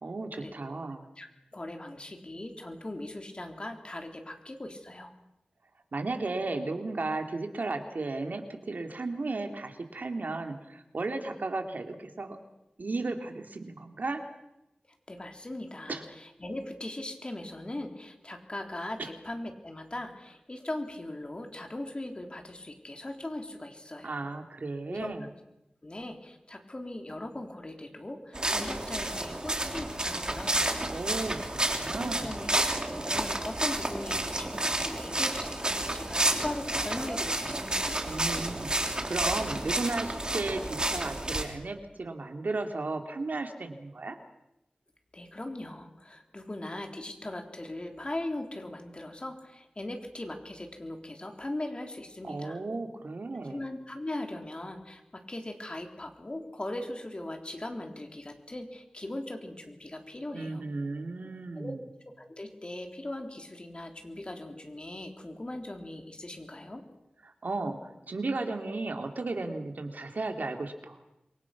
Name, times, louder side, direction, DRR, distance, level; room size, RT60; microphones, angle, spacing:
voice 1, 0.0-1.1 5.9-12.4 12.8-14.2 15.9-16.0 19.0-19.1 24.0-25.3 30.9-32.3 38.0-44.2 52.2-53.6 60.3-61.9 67.2-67.8 68.1-71.0, right 3 dB, 75° right, 5 dB, 2.6 m, -34 dB
voice 2, 1.5-5.1 15.1-24.2 24.9-25.1 25.8-30.8 32.0-32.5 32.8-37.9 45.1-52.6 53.5-60.6 61.6-61.7 62.1-66.8, left 1 dB, 35° left, 4 dB, 3.6 m, -39 dB
sound 1, 28.3-41.4, right 1 dB, 30° right, 3.2 m, -30 dB
27.5 x 23.5 x 6.0 m, 0.89 s
wide cardioid pair, 75°, 3 cm